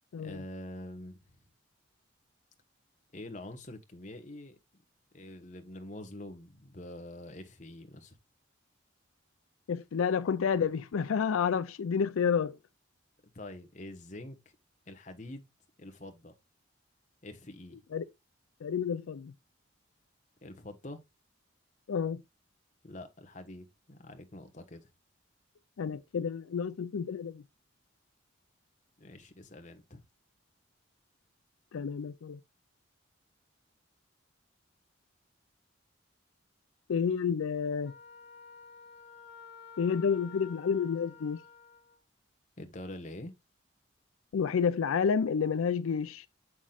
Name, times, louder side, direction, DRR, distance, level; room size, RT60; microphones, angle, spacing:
voice 1, 0.1-1.4 3.1-4.6 5.1-8.2 13.3-14.4 14.9-15.5 15.8-16.3 17.2-17.8 20.4-21.0 22.8-24.9 29.0-30.0 42.6-43.3, left 1 dB, 35° left, 1.1 m, -45 dB
voice 2, 9.7-12.5 17.9-18.0 18.6-19.3 21.9-22.2 25.8-27.4 31.7-32.4 36.9-37.9 39.8-41.4 44.3-46.3, left 6 dB, 85° left, 0.4 m, -30 dB
Wind instrument woodwind instrument, 37.8-42.0, left 6 dB, 55° left, 1.3 m, -51 dB
7.2 x 6.0 x 2.4 m
head